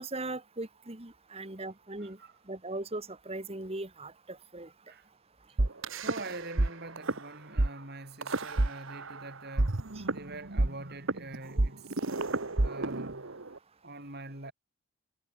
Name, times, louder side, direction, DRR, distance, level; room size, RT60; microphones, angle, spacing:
voice 1, 0.0-2.2 2.5-4.7, right 2 dB, 25° right, 1.7 m, -39 dB
voice 2, 1.3-1.6 2.0-2.4 4.9-5.1 5.5-5.6 6.0-12.0 12.6-13.4 13.8-14.5, right 2 dB, 45° right, 6.1 m, -45 dB
sound 1, 5.6-6.7 7.0-7.2 7.6-7.7 8.2-9.2 9.6-13.6, right 2 dB, 65° right, 1.3 m, -29 dB
head